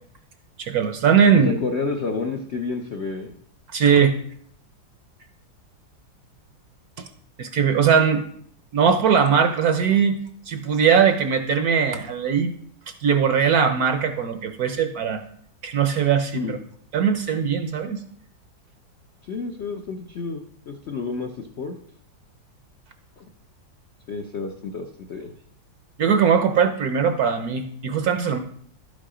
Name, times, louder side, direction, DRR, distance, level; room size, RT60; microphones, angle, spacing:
voice 1, 0.6-1.6 3.7-4.2 7.4-8.2 8.7-10.2 10.5-12.5 13.0-15.2 15.6-16.6 16.9-18.0 26.0-28.4, right 7 dB, 60° right, 8 dB, 1.0 m, -20 dB
voice 2, 1.4-3.3 16.3-16.6 19.2-21.8 23.2-23.3 24.1-25.3, left 4 dB, 60° left, 3 dB, 0.7 m, -30 dB
12.0 x 5.7 x 4.9 m, 0.62 s
omnidirectional pair, 2.1 m